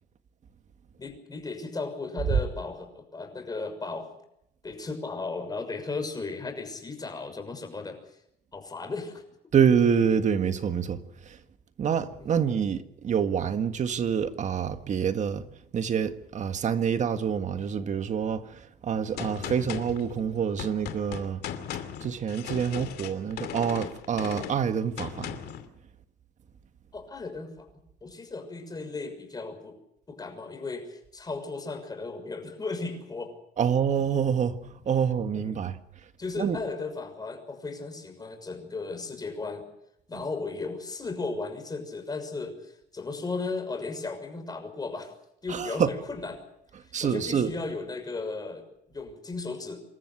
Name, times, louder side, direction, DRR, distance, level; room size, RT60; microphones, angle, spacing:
voice 1, 1.0-4.1 4.6-8.0 8.5-9.2 12.2-12.4 26.9-27.7 28.0-29.8 30.1-33.3 35.3-35.5 36.2-39.6 40.1-45.1 45.4-46.3 47.0-49.8, left 3 dB, 25° left, 6.3 m, -35 dB
voice 2, 9.5-11.4 11.8-15.5 15.7-21.4 22.0-25.4 33.6-34.6 34.9-35.8 36.4-36.6 40.1-40.2 45.5-45.9 46.9-47.5, right 7 dB, 45° right, 1.7 m, -27 dB
Gunshot gunfire, 19.2-25.7, left 10 dB, 75° left, 2.6 m, -38 dB
27.0 x 14.0 x 9.8 m
cardioid pair, 110°, 17 cm